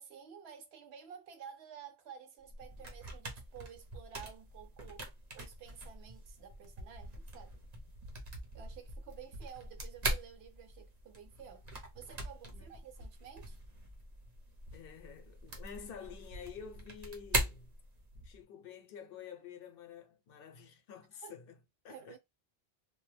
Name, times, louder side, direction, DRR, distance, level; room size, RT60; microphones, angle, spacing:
voice 1, 0.0-5.1 5.3-7.6 8.5-11.6 11.9-13.6 21.2-21.3 21.9-22.2, right 8 dB, 80° right, 0.8 m, -52 dB
sound 1, 2.4-18.4, right 1 dB, 45° right, 0.7 m, -42 dB
voice 2, 14.7-17.7 18.2-21.6 21.8-22.2, left 7 dB, 65° left, 0.7 m, -49 dB
2.2 x 2.1 x 3.1 m
omnidirectional pair, 1.1 m